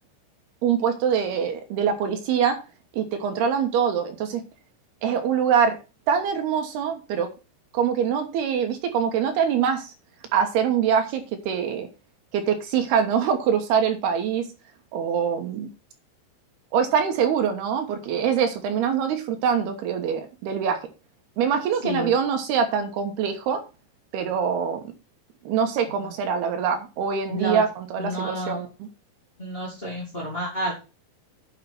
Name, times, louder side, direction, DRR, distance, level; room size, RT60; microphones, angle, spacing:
voice 1, 0.6-2.6 2.9-4.4 5.0-5.8 6.1-7.3 7.7-9.9 10.3-11.9 12.3-14.5 14.9-15.7 16.7-20.8 21.4-23.6 24.1-24.8 25.5-28.9, right 7 dB, 70° right, 6 dB, 2.8 m, -24 dB
voice 2, 27.3-27.6 28.0-28.6 29.4-30.7, equal, 25° left, -3 dB, 1.1 m, -30 dB
9.1 x 6.5 x 5.9 m, 0.31 s
omnidirectional pair, 5.7 m